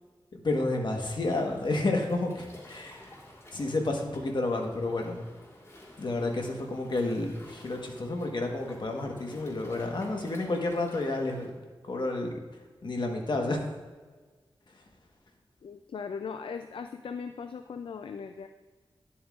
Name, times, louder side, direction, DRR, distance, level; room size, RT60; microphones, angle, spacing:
voice 1, 0.3-3.2 3.5-5.3 6.0-11.6 11.8-12.4 12.8-13.6 14.7-14.8, left 2 dB, 55° left, 2 dB, 1.2 m, -30 dB
Waves surf, 1.1-11.5, left 1 dB, 30° left, 1.7 m, -52 dB
voice 2, 15.6-18.5, left 6 dB, 75° left, 8 dB, 0.3 m, -38 dB
10.5 x 7.2 x 2.4 m, 1.4 s
wide cardioid pair, 85°, 9 cm